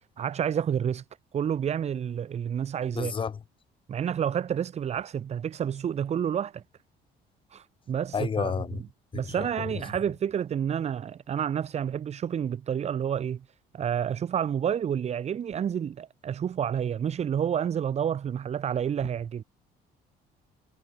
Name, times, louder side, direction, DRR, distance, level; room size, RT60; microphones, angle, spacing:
voice 1, 0.2-1.0 1.3-3.1 3.9-6.6 7.5-13.4 13.7-19.4, right 8 dB, 40° right, 1.0 m, -29 dB
voice 2, 3.0-3.3 8.1-8.7, left 6 dB, 30° left, 0.9 m, -28 dB
cardioid pair, 110°, 17 cm